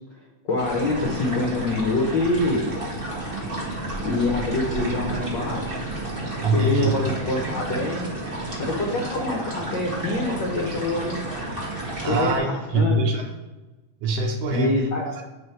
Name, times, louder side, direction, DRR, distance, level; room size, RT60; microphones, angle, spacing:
voice 1, 0.5-2.7 4.0-5.8 6.5-8.1 8.6-11.2 12.0-13.0 14.5-15.0, left 2 dB, 75° left, -2 dB, 1.0 m, -25 dB
sound 1, 0.6-12.4, right 2 dB, 40° right, 0.7 m, -31 dB
voice 2, 6.4-6.9 12.0-13.2 14.0-15.2, right 2 dB, 75° right, 3 dB, 1.5 m, -24 dB
8.7 x 3.4 x 4.4 m, 1.2 s
omnidirectional pair, 3.6 m